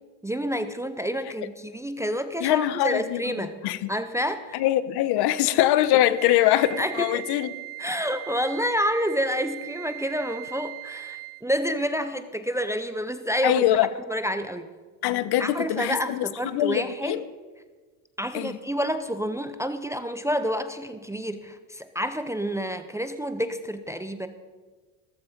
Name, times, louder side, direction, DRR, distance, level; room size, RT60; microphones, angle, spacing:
voice 1, 0.2-3.6 3.9-4.6 6.8-7.3 7.8-13.6 14.1-14.7 15.4-17.2 18.2-24.3, equal, 5° right, 10 dB, 0.6 m, -29 dB
voice 2, 2.4-3.8 4.5-7.5 13.4-13.9 15.0-17.2 18.3-18.6, left 13 dB, 55° left, 16 dB, 0.9 m, -23 dB
Wind instrument woodwind instrument, 6.2-11.5, right 28 dB, 85° right, 0.9 m, -39 dB
15.5 x 14.5 x 5.2 m, 1.4 s
cardioid pair, 125°, 46 cm